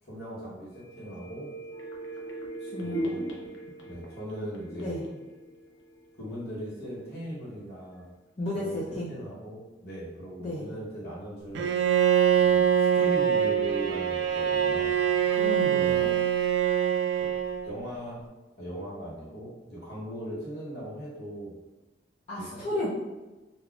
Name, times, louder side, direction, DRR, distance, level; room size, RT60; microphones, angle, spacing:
voice 1, 0.0-1.5 2.8-3.3 3.8-5.0 6.2-8.1 8.5-11.7 12.4-15.0 15.8-16.1 17.2-17.3 17.6-18.3 18.6-21.5 22.4-22.8, equal, 60° left, -7 dB, 1.0 m, -39 dB
sound 1, 0.7-6.4 6.8-6.9, right 1 dB, 85° left, 0.6 m, -38 dB
voice 2, 2.6-3.2 4.8-5.0 8.4-9.1 10.4-10.7 15.3-16.1 22.3-22.9, left 1 dB, 35° left, -10 dB, 0.6 m, -33 dB
Bowed string instrument, 11.5-17.8, right 9 dB, 80° right, 0.3 m, -24 dB
3.7 x 2.3 x 2.4 m, 1.1 s
head